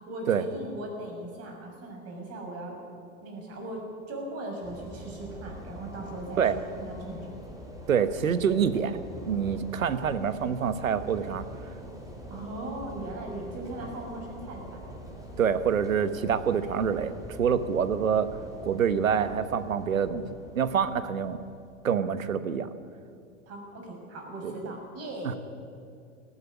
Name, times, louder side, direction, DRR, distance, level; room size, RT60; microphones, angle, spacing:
voice 1, 0.0-2.8 3.2-7.4 12.3-14.8 23.5-25.4, right 1 dB, 35° right, 1 dB, 6.7 m, -39 dB
sound 1, 4.6-22.5, equal, 10° right, 4.6 m, -44 dB
voice 2, 7.9-11.5 15.4-18.3 18.6-21.4 21.8-22.7 24.4-24.6, right 7 dB, 80° right, 12 dB, 1.3 m, -26 dB
19.0 x 14.5 x 9.8 m, 2.4 s
hypercardioid pair, 95°, 40 cm